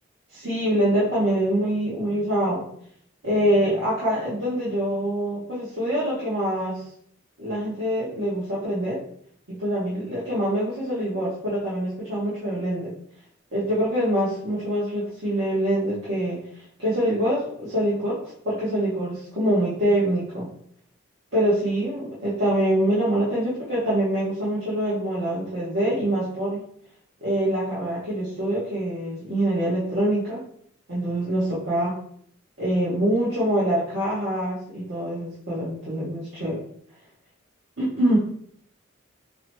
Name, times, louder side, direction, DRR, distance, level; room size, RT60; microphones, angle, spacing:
voice 1, 0.3-2.7 3.2-6.8 7.4-9.0 9.5-12.9 13.5-16.4 16.8-20.5 21.3-26.6 27.2-30.4 30.9-32.0 32.6-36.6 37.8-38.2, right 1 dB, 60° right, -9 dB, 1.1 m, -25 dB
4.6 x 2.2 x 3.0 m, 0.65 s
head